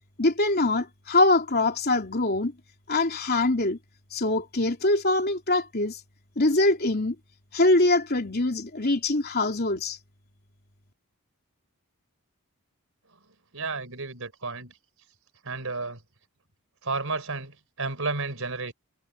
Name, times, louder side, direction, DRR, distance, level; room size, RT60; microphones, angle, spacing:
voice 1, 0.2-2.5 2.9-3.8 4.1-6.0 6.4-7.1 7.5-10.0, left 2 dB, 45° left, 3.1 m, -23 dB
voice 2, 13.5-14.7 15.4-16.0 16.8-18.7, right 3 dB, 65° right, 4.9 m, -32 dB
head